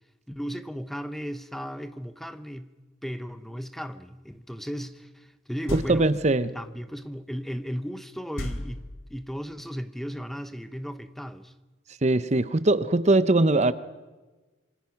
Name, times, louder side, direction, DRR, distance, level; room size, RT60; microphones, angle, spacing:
voice 1, 0.3-2.7 3.0-6.1 6.5-8.8 9.1-11.5, equal, ahead, 0.8 m, -35 dB
sound 1, 5.7-6.3 8.4-9.4, left 1 dB, 80° left, 3.0 m, -35 dB
voice 2, 5.7-6.6 12.0-13.7, right 2 dB, 35° right, 0.8 m, -21 dB
26.5 x 25.5 x 5.9 m
head